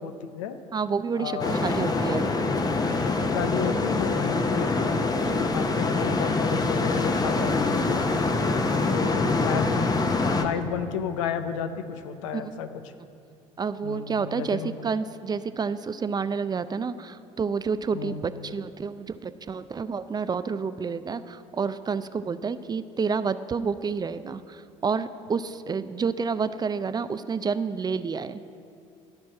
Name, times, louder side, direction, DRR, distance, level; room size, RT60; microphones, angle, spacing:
voice 1, 0.0-0.6 1.2-1.9 3.0-8.0 8.9-10.0 10.3-12.8 13.8-14.8 17.9-18.2, left 8 dB, 80° left, 9 dB, 0.7 m, -32 dB
voice 2, 0.7-2.3 12.3-12.6 13.6-28.4, right 5 dB, 25° right, 13 dB, 0.4 m, -29 dB
sound 1, 1.4-10.4, left 3 dB, 25° left, 0.9 m, -25 dB
13.0 x 4.6 x 7.5 m, 2.5 s
hypercardioid pair, 65°, 16 cm